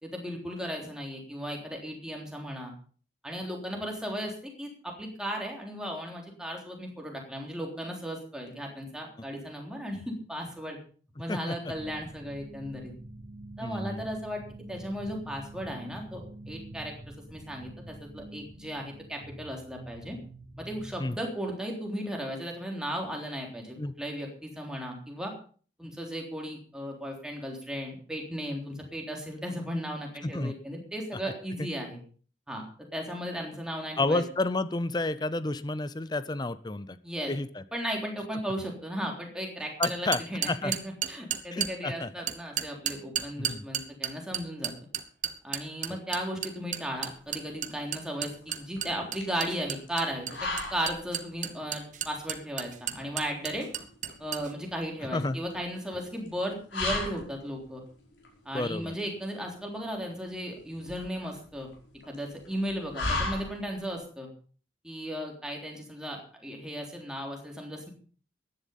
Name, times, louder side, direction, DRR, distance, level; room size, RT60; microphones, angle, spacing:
voice 1, 0.0-2.7 3.2-10.8 11.2-12.9 13.6-14.4 14.7-16.9 17.3-20.2 20.6-25.3 25.8-32.0 32.5-32.7 32.9-34.2 37.0-37.3 37.7-44.7 45.4-53.7 54.2-57.8 58.5-61.7 62.1-64.3 64.8-67.9, equal, 5° right, 0 dB, 3.5 m, -36 dB
sound 1, 11.7-21.0, right 1 dB, 85° right, 3.1 m, -46 dB
voice 2, 13.6-14.0 21.0-21.2 23.8-23.9 30.2-30.5 31.2-31.3 34.0-37.0 37.3-37.6 39.8-40.7 41.5-42.1 43.4-43.6 55.1-55.4 58.5-58.9, left 2 dB, 25° left, 14 dB, 0.6 m, -30 dB
sound 2, 39.8-41.7 42.3-54.5, right 9 dB, 40° right, 1.1 m, -32 dB
sound 3, 46.9-63.9, left 2 dB, 80° left, 5.4 m, -39 dB
15.0 x 11.0 x 5.4 m, 0.42 s
head